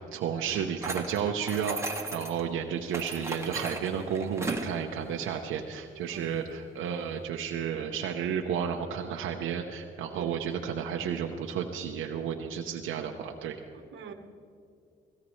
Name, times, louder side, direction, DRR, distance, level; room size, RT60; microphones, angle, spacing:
voice 1, 0.1-13.6, right 7 dB, 90° right, 0.8 m, -32 dB
sound 1, 0.8-2.4 2.9-4.7, right 2 dB, 15° right, 1.4 m, -36 dB
voice 2, 10.1-10.4 13.7-14.1, right 8 dB, 70° right, 1.1 m, -44 dB
17.0 x 16.5 x 3.2 m
cardioid pair, 90°, 20 cm